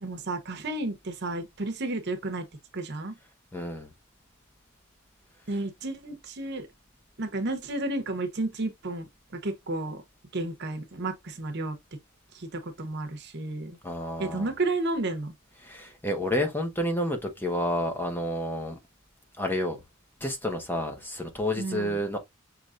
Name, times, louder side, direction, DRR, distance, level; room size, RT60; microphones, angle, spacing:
voice 1, 0.0-2.5 2.7-3.2 5.5-6.7 7.2-10.0 10.3-11.8 12.3-13.8 14.2-15.3 21.6-22.0, right 2 dB, 55° right, 0.9 m, -32 dB
voice 2, 3.5-3.9 13.8-14.5 15.6-18.8 19.4-19.8 20.2-22.2, equal, 10° left, 1.0 m, -30 dB
6.1 x 3.2 x 2.5 m
head